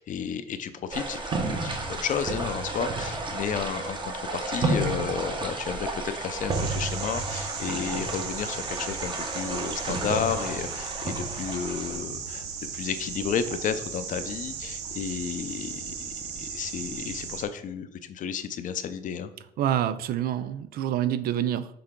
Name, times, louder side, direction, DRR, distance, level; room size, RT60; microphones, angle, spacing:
voice 1, 0.0-12.4 12.7-19.3, left 7 dB, 50° left, 11 dB, 0.6 m, -32 dB
sound 1, 0.9-12.0, right 2 dB, 30° right, 1.0 m, -32 dB
sound 2, 6.5-17.4, right 6 dB, 80° right, 1.0 m, -36 dB
voice 2, 19.6-21.7, right 11 dB, 65° right, 13 dB, 0.4 m, -27 dB
6.7 x 3.8 x 3.7 m, 0.77 s
cardioid pair, 110°, 17 cm